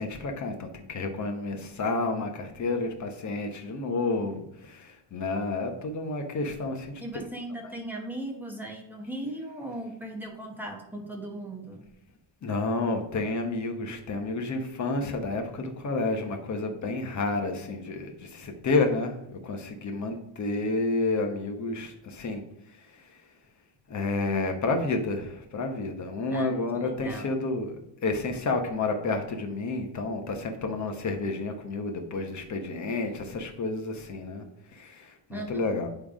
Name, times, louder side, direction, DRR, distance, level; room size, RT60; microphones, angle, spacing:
voice 1, 0.0-7.0 12.4-19.1 19.4-22.4 23.9-27.7 28.0-34.4 34.7-35.9, left 3 dB, 35° left, 5 dB, 1.1 m, -30 dB
voice 2, 7.0-11.8 26.3-27.3 35.3-35.8, right 1 dB, 5° right, 0 dB, 1.2 m, -38 dB
9.4 x 3.5 x 5.0 m, 0.79 s
cardioid pair, 180°, 50 cm